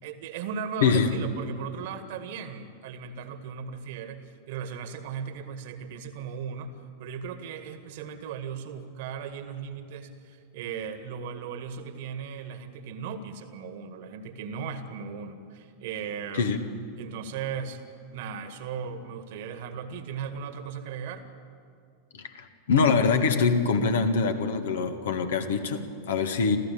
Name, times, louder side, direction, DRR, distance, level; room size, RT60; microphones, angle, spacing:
voice 1, 0.0-6.7 7.0-16.5 17.0-17.8 18.1-21.2, right 6 dB, 50° right, 9 dB, 1.9 m, -37 dB
voice 2, 0.8-1.1 16.3-16.6 22.1-26.6, left 5 dB, 60° left, 7 dB, 1.8 m, -24 dB
27.5 x 14.5 x 8.6 m, 2.3 s
figure-of-eight pair, 90°, 0 cm